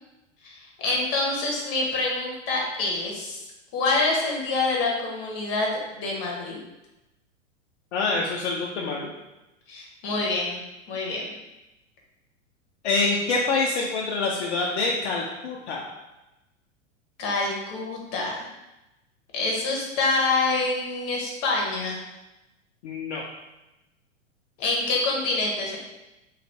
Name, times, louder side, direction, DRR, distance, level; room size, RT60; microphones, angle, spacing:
voice 1, 0.4-3.4 3.7-6.6 9.7-10.6 10.9-11.3 17.2-18.4 19.3-22.0 24.6-25.8, left 3 dB, 40° left, -2 dB, 1.0 m, -26 dB
voice 2, 7.9-9.1 12.8-15.9 22.8-23.2, left 3 dB, 65° left, -2 dB, 0.5 m, -26 dB
2.5 x 2.4 x 3.3 m, 0.99 s
figure-of-eight pair, 100°, 38 cm